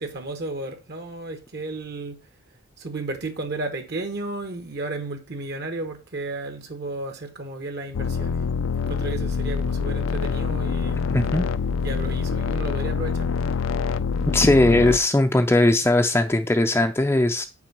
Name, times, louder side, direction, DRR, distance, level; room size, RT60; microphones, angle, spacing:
voice 1, 0.0-2.3 2.8-8.4 8.7-11.3 11.8-13.3, right 2 dB, 55° right, 1.0 m, -33 dB
sound 1, 7.9-15.0, left 5 dB, 75° left, 0.4 m, -25 dB
voice 2, 11.1-11.4 14.3-17.4, left 1 dB, 10° left, 0.4 m, -19 dB
6.0 x 4.6 x 5.9 m
head